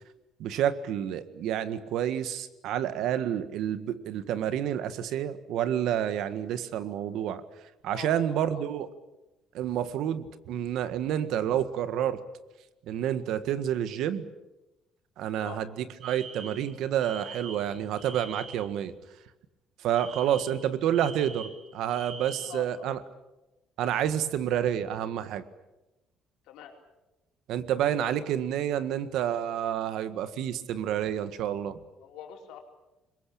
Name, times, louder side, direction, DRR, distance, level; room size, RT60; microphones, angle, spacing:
voice 1, 0.4-7.4 7.8-8.9 9.5-12.2 12.9-14.2 15.2-18.9 19.8-23.0 23.8-25.4 27.5-31.8, right 10 dB, 70° right, 12 dB, 1.7 m, -29 dB
voice 2, 7.9-8.6 15.4-15.6 22.2-22.9 26.4-26.7 32.0-32.6, left 9 dB, 85° left, 2 dB, 4.6 m, -44 dB
Alarm, 16.0-18.7 19.9-22.7, right 4 dB, 55° right, 7.2 m, -44 dB
26.5 x 22.5 x 8.7 m, 1.0 s
cardioid pair, 145°, 0 cm